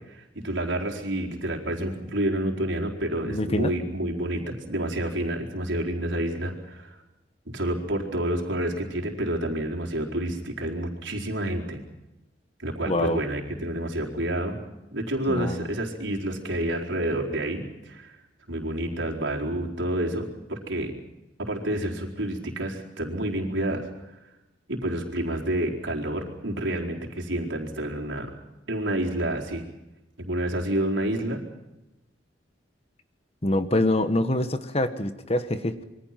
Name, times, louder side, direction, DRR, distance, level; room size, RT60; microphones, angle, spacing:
voice 1, 0.1-6.9 7.5-11.8 12.6-14.6 14.9-18.2 18.5-20.9 21.4-23.9 24.7-28.3 28.7-29.6 30.2-31.4, right 1 dB, 90° right, 0 dB, 4.5 m, -29 dB
voice 2, 3.3-3.7 12.9-13.2 15.3-15.7 33.4-35.8, left 1 dB, 30° left, 10 dB, 1.4 m, -25 dB
26.5 x 23.5 x 5.9 m, 0.98 s
head